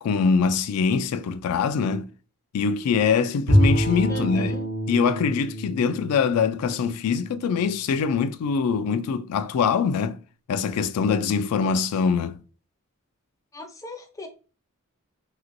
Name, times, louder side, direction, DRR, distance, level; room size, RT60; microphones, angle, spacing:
voice 1, 0.0-2.1 2.5-4.6 4.9-10.2 10.5-12.4, left 6 dB, 80° left, 0.3 m, -23 dB
Bowed string instrument, 3.5-7.7, equal, 50° right, 0.7 m, -25 dB
voice 2, 4.1-4.7 13.5-14.3, left 1 dB, 15° left, 0.5 m, -38 dB
2.9 x 2.9 x 2.5 m
head